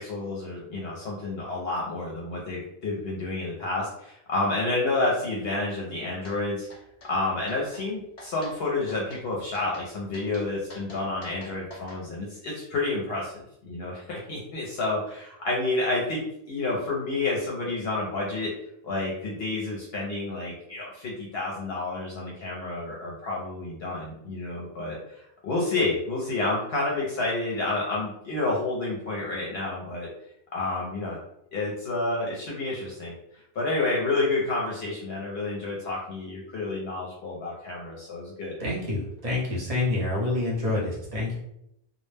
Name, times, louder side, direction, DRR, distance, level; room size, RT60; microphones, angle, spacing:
voice 1, 0.0-6.7 7.1-18.5 18.8-30.1 30.5-31.2 31.5-33.1 33.5-38.6, left 2 dB, 75° left, -3 dB, 0.8 m, -29 dB
sound 1, 6.2-6.4 6.7-7.1 7.5-7.8 8.2-8.6 8.9-9.2 9.5-9.9 10.1-12.0, left 1 dB, 45° left, 0.7 m, -45 dB
voice 2, 38.6-41.4, left 2 dB, 40° right, -4 dB, 0.8 m, -27 dB
2.1 x 2.0 x 3.2 m, 0.78 s
omnidirectional pair, 1.1 m